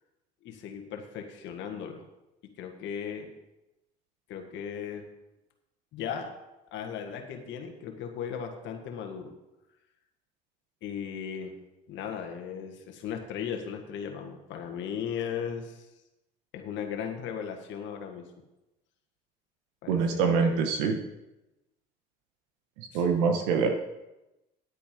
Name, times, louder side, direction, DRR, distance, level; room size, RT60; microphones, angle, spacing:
voice 1, 0.4-2.0 2.4-3.3 4.3-5.0 5.9-6.3 6.7-9.3 10.8-11.6 11.9-15.9 16.5-18.3 19.8-20.6 22.9-23.3, left 7 dB, 65° left, 3 dB, 1.6 m, -37 dB
voice 2, 19.9-20.9 22.8-23.7, right 5 dB, 85° right, 4 dB, 1.3 m, -25 dB
9.5 x 8.7 x 5.1 m, 0.97 s
supercardioid pair, 80°, 21 cm